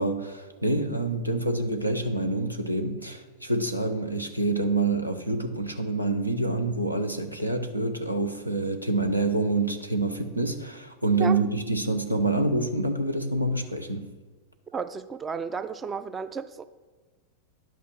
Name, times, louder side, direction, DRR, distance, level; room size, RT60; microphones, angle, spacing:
voice 1, 0.0-14.1, right 2 dB, 85° right, 0.8 m, -27 dB
voice 2, 14.7-16.6, right 5 dB, 20° right, 0.4 m, -32 dB
10.5 x 6.0 x 5.8 m
figure-of-eight pair, 90°, 0 cm